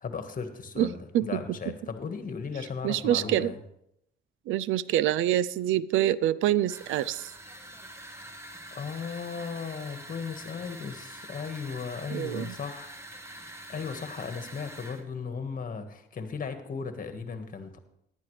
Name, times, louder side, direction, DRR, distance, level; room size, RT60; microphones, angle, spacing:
voice 1, 0.0-3.6 8.7-12.9 13.3-17.8, left 5 dB, 45° left, 7 dB, 1.6 m, -36 dB
voice 2, 0.8-1.4 2.8-3.5 4.5-7.3 12.1-12.5, right 12 dB, 85° right, 20 dB, 0.4 m, -26 dB
sound 1, 6.7-15.0, right 1 dB, 15° right, 1.4 m, -45 dB
14.5 x 10.5 x 3.3 m, 0.77 s
cardioid pair, 90°, 20 cm